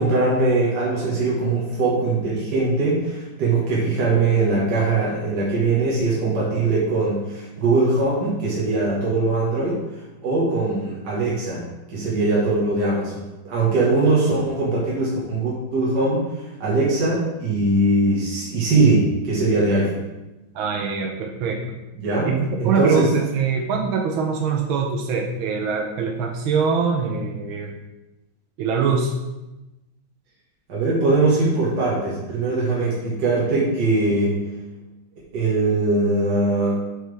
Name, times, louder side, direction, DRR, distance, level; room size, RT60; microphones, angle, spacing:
voice 1, 0.0-9.8 10.2-20.0 22.0-22.3 22.6-23.1 30.7-34.4 35.3-36.8, right 2 dB, 55° right, -6 dB, 2.1 m, -21 dB
voice 2, 20.5-21.8 22.3-27.8 28.6-29.1, right 5 dB, 90° right, 2 dB, 1.6 m, -23 dB
7.5 x 7.1 x 3.4 m, 1.0 s
omnidirectional pair, 2.2 m